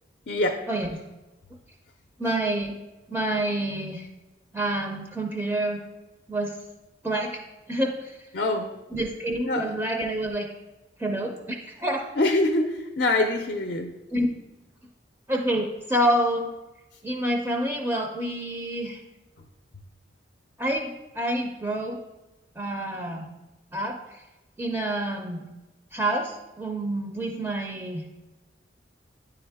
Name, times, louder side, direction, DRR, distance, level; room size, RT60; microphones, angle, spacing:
voice 1, 0.3-0.6 8.3-8.7 9.5-9.7 12.2-13.9, left 2 dB, 55° left, 4 dB, 0.5 m, -24 dB
voice 2, 2.2-2.7 3.1-4.1 4.5-5.8 6.3-6.6 7.0-7.4 7.7-8.2 8.9-10.5 11.0-12.0 14.1-14.3 15.3-16.5 17.0-19.0 20.6-22.0 22.6-23.3 23.7-24.2 24.6-25.4 25.9-28.0, right 1 dB, 10° right, 1 dB, 0.4 m, -28 dB
9.8 x 3.5 x 3.4 m, 1.1 s
head